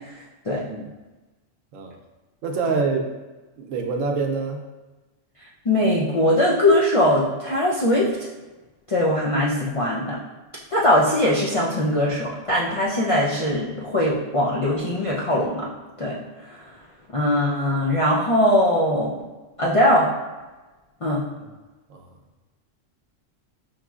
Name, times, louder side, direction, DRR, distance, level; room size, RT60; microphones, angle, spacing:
voice 1, 0.6-0.9 1.7-1.9 2.4-3.2 3.6-4.7 21.9-22.1, right 4 dB, 85° right, 3 dB, 1.0 m, -26 dB
voice 2, 5.7-8.1 8.9-10.2 10.7-15.7 16.0-16.2 16.5-16.6 17.1-19.2 19.6-20.1 21.0-21.2, left 1 dB, 55° left, -5 dB, 0.3 m, -21 dB
5.5 x 3.0 x 2.3 m, 1.2 s
omnidirectional pair, 1.3 m